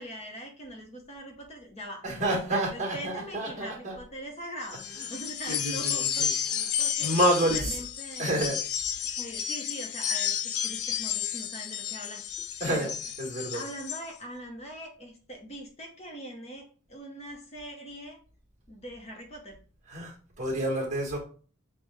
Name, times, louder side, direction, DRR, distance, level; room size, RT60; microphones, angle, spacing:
voice 1, 0.0-2.0 2.5-6.3 6.8-8.3 9.2-12.3 12.7-12.9 13.5-18.2 18.7-19.6, equal, 30° left, 2 dB, 0.8 m, -42 dB
voice 2, 2.0-4.0 4.7-5.2 5.4-6.7 7.0-7.8 8.2-8.6 12.6-12.9 13.2-13.7 19.9-21.2, right 1 dB, 35° right, -1 dB, 1.4 m, -29 dB
sound 1, 4.6-14.0, left 9 dB, 90° left, 0.5 m, -32 dB
6.2 x 2.3 x 3.4 m, 0.40 s
head